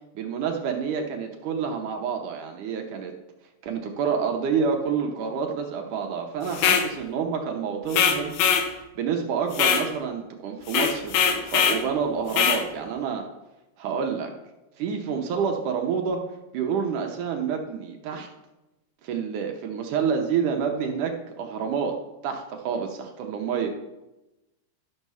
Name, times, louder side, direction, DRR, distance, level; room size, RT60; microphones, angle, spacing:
voice 1, 0.2-3.1 3.6-13.3 13.8-14.3 14.8-16.2 16.5-18.3 19.0-22.0 22.2-23.7, right 6 dB, 70° right, 3 dB, 2.0 m, -28 dB
sound 1, 6.5-6.9 7.9-8.7 9.5-9.9 10.7-11.8 12.3-12.6, left 7 dB, 85° left, 2.8 m, -21 dB
12.0 x 6.0 x 5.5 m, 0.98 s
omnidirectional pair, 4.4 m